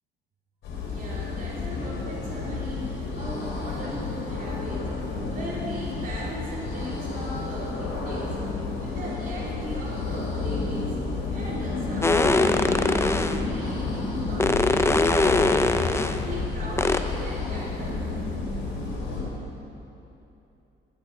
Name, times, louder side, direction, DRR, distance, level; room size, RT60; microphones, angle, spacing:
sound 1, 0.6-19.2, left 3 dB, 80° left, 3.2 m, -30 dB
voice 1, 0.8-4.9 5.3-8.4 8.8-11.0 11.3-15.7 16.1-18.1, equal, 45° right, -6 dB, 3.2 m, -38 dB
sound 2, 12.0-13.4 14.4-16.2 16.8-17.0, left 2 dB, 15° left, 0.6 m, -22 dB
13.0 x 9.5 x 5.5 m, 2.9 s
cardioid pair, 90°, 20 cm